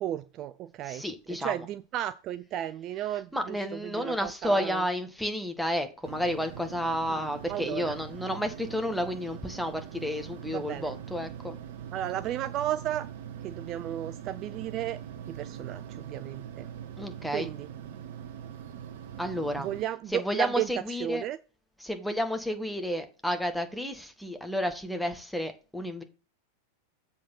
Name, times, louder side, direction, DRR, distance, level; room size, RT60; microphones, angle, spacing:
voice 1, 0.0-1.0 1.3-3.6 3.8-4.8 7.1-7.2 7.5-7.9 10.5-10.9 11.9-13.1 13.4-15.0 15.3-16.7 17.3-17.7 19.6-20.7 21.0-21.4, right 12 dB, 35° right, 0.4 m, -34 dB
voice 2, 0.8-1.6 3.3-11.6 17.0-17.5 19.2-19.7 20.1-21.2 21.8-26.0, equal, ahead, 1.4 m, -31 dB
sound 1, 6.0-19.8, right 9 dB, 55° right, 1.0 m, -42 dB
7.4 x 4.4 x 5.5 m
figure-of-eight pair, 90°, 0 cm